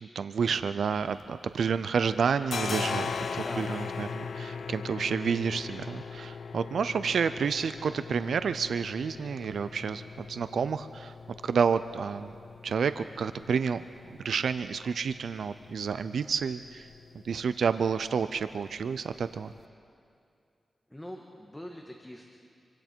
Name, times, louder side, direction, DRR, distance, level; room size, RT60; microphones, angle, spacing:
voice 1, 0.0-11.1 11.4-12.3 12.6-16.9 17.2-19.5, right 6 dB, 85° right, 12 dB, 0.5 m, -30 dB
sound 1, 0.9-19.6, left 5 dB, 75° left, 0.8 m, -40 dB
voice 2, 3.3-4.0 20.9-22.2, left 1 dB, 10° left, 1 dB, 1.6 m, -43 dB
27.0 x 25.0 x 4.5 m, 2.5 s
wide cardioid pair, 105°, 0 cm